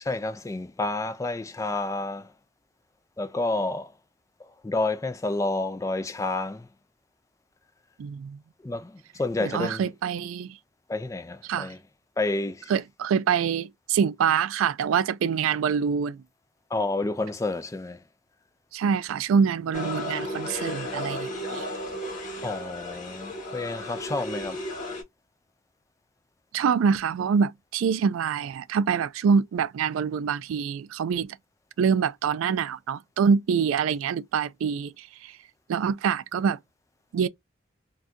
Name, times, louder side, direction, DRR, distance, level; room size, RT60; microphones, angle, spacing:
voice 1, 0.1-2.3 3.2-3.9 4.6-6.7 8.6-9.8 10.9-11.8 12.2-12.7 16.7-18.0 22.4-24.6, left 2 dB, 15° left, 0.3 m, -29 dB
voice 2, 8.0-8.4 9.4-10.6 11.4-11.7 12.7-16.2 18.7-21.7 26.5-31.4 31.8-35.3 35.7-36.6 37.1-37.3, right 6 dB, 90° right, 0.3 m, -25 dB
sound 1, 19.7-25.0, left 1 dB, 40° left, 1.3 m, -34 dB
2.6 x 2.3 x 3.6 m
head